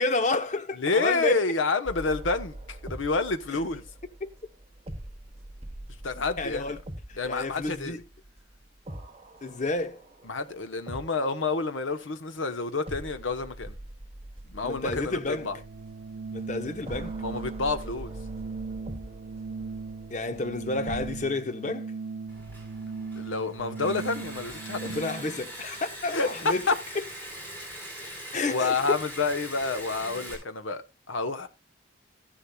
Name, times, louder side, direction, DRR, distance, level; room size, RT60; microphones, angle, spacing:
voice 1, 0.0-1.5 3.5-3.6 4.2-4.3 6.1-6.8 7.1-8.0 9.4-10.0 14.6-15.5 16.3-17.2 20.1-21.9 24.8-26.7 26.9-27.0 28.3-29.0, left 2 dB, 40° left, 0.8 m, -30 dB
voice 2, 0.8-3.8 6.0-6.7 7.2-7.9 10.3-13.7 14.5-15.6 17.2-18.1 23.2-25.0 26.1-26.7 28.0-31.5, left 3 dB, 80° left, 1.0 m, -29 dB
sound 1, 1.9-11.6 12.9-21.3, right 1 dB, 30° right, 1.2 m, -43 dB
Organ, 15.1-25.4, right 4 dB, 65° right, 0.5 m, -38 dB
Liquid, 22.3-30.3, right 1 dB, 10° left, 4.3 m, -42 dB
14.5 x 10.0 x 2.3 m
head